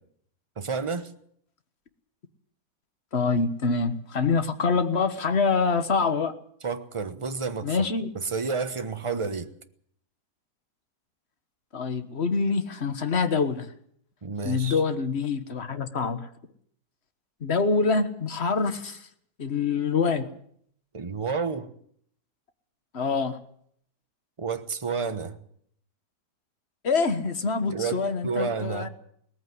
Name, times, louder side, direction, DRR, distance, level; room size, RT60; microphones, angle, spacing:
voice 1, 0.6-1.1 6.6-7.8 8.1-9.5 14.2-14.8 20.9-21.7 24.4-25.4 27.7-28.9, right 5 dB, 20° right, 1.0 m, -30 dB
voice 2, 3.1-6.3 7.6-8.1 11.7-13.7 14.4-16.3 17.4-19.0 19.4-20.3 22.9-23.4 26.8-28.9, left 4 dB, 40° left, 1.6 m, -25 dB
19.0 x 14.5 x 9.6 m
omnidirectional pair, 1.8 m